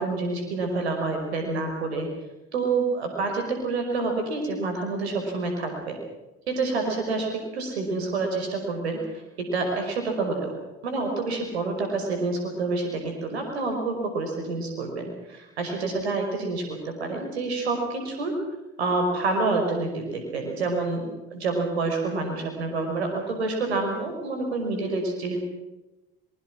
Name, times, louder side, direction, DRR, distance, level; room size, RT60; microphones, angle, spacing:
voice 1, 0.0-2.1 2.5-6.0 6.5-9.0 9.4-10.5 10.8-18.3 18.8-25.4, right 3 dB, 90° right, 3 dB, 5.4 m, -28 dB
26.0 x 22.0 x 6.2 m, 1.0 s
hypercardioid pair, 60°, 31 cm